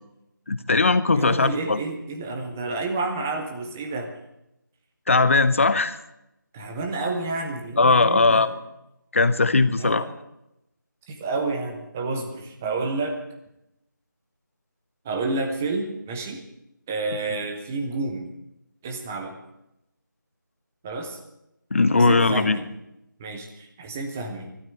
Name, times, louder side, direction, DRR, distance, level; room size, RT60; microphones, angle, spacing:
voice 1, 0.5-1.8 5.1-6.0 7.8-8.5 9.1-10.0 21.7-22.6, left 3 dB, 40° left, 14 dB, 0.8 m, -19 dB
voice 2, 1.1-4.1 6.5-8.5 9.8-10.1 11.1-13.2 15.0-16.4 16.9-18.3 18.8-19.4 20.8-21.2 22.0-22.7 23.2-24.5, right 3 dB, 5° right, 4 dB, 0.5 m, -30 dB
12.5 x 12.0 x 8.4 m, 0.87 s
figure-of-eight pair, 170°, 11 cm